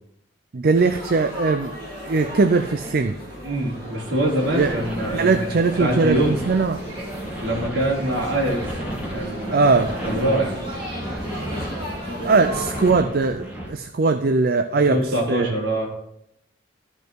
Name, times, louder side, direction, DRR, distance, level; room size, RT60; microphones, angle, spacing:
voice 1, 0.5-1.7 2.0-3.1 4.5-4.8 5.1-6.8 9.5-9.9 12.2-15.5, right 4 dB, 50° right, 8 dB, 0.5 m, -20 dB
Laughter / Chatter / Crowd, 0.7-12.9, equal, 25° right, 3.3 m, -35 dB
voice 2, 3.4-6.4 7.4-8.8 9.1-9.8 10.0-10.7 14.7-15.9, right 1 dB, 65° right, -6 dB, 4.1 m, -24 dB
sound 1, 4.3-13.7, equal, 10° right, 2.3 m, -33 dB
14.5 x 5.4 x 4.6 m, 0.81 s
head